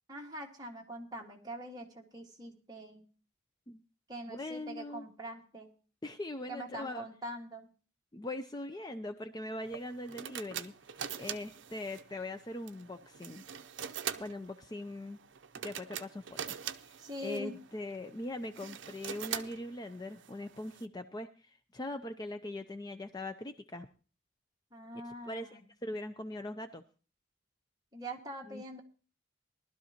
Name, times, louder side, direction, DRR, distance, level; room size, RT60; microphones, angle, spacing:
voice 1, 0.1-3.0 4.1-5.7 6.5-7.7 17.0-17.6 24.7-25.6 27.9-28.8, right 1 dB, 20° right, 0 dB, 1.7 m, -43 dB
voice 2, 4.3-5.1 6.0-7.1 8.1-10.7 11.2-13.4 14.2-15.2 15.6-16.5 16.8-16.9 17.2-23.9 24.9-26.8 28.5-28.8, left 1 dB, 20° left, 8 dB, 0.5 m, -41 dB
sound 1, 9.7-20.9, right 9 dB, 70° right, 0.6 m, -44 dB
19.0 x 12.0 x 2.9 m, 0.36 s
head